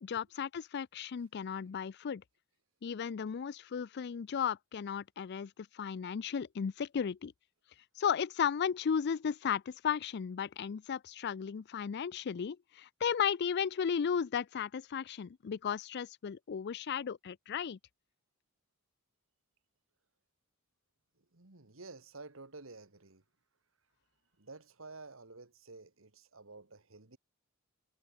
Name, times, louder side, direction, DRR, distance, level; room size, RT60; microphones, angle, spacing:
voice 1, 0.0-2.2 2.8-7.3 8.0-17.8, left 7 dB, 55° left, 0.4 m, -35 dB
voice 2, 21.2-23.2 24.4-27.2, right 3 dB, 70° right, 1.8 m, -51 dB
head